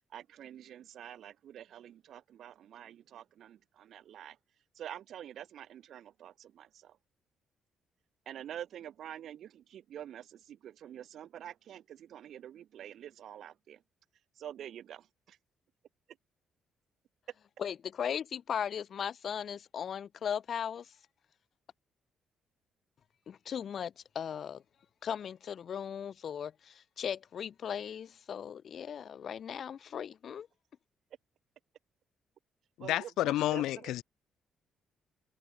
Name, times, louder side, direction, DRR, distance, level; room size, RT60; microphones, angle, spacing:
voice 1, 0.1-4.4 4.7-7.0 8.3-13.8 14.4-15.1 32.8-33.9, right 10 dB, 70° right, 7.8 m, -47 dB
voice 2, 17.6-20.9 23.3-24.6 25.0-30.5, left 8 dB, 55° left, 1.3 m, -37 dB
voice 3, 32.8-34.0, left 14 dB, 90° left, 1.9 m, -30 dB
cardioid pair, 90°, 0 cm